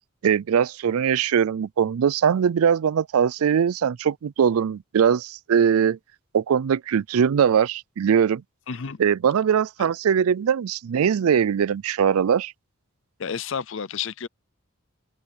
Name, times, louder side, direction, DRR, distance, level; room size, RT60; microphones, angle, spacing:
voice 1, 0.2-6.0 6.3-8.4 9.0-12.5, right 7 dB, 80° right, 0.4 m, -21 dB
voice 2, 8.7-9.0 13.2-14.3, left 7 dB, 60° left, 0.6 m, -30 dB
open air
head